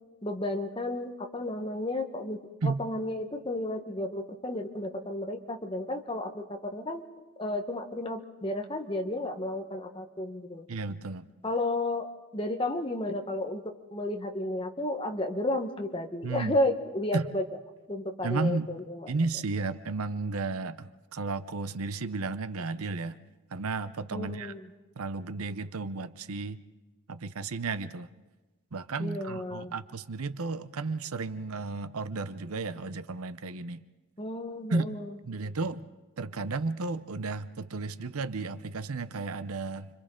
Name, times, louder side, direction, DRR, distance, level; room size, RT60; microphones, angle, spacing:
voice 1, 0.2-7.0 7.4-10.7 11.4-12.1 12.3-17.4 17.9-19.1 24.1-24.6 29.0-29.7 34.2-35.2, left 1 dB, 25° left, 4 dB, 1.1 m, -32 dB
voice 2, 10.7-11.3 16.2-16.6 17.1-17.3 18.2-18.7 19.1-23.2 23.5-24.5 25.0-26.6 27.1-28.1 28.7-33.8 34.7-34.9 35.2-35.9 36.2-39.9, right 3 dB, 85° right, 13 dB, 0.7 m, -33 dB
30.0 x 25.0 x 3.8 m, 1.2 s
head